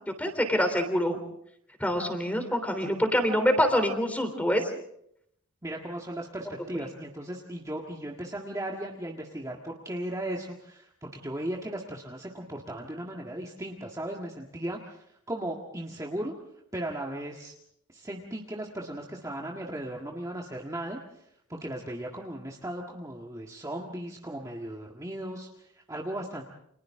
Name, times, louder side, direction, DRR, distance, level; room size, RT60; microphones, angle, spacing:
voice 1, 0.2-1.2 1.8-4.7, equal, 5° left, 6 dB, 3.4 m, -25 dB
voice 2, 5.6-16.3 16.7-17.5 17.9-26.5, right 1 dB, 15° right, -1 dB, 1.7 m, -37 dB
29.5 x 27.0 x 3.8 m, 0.73 s
head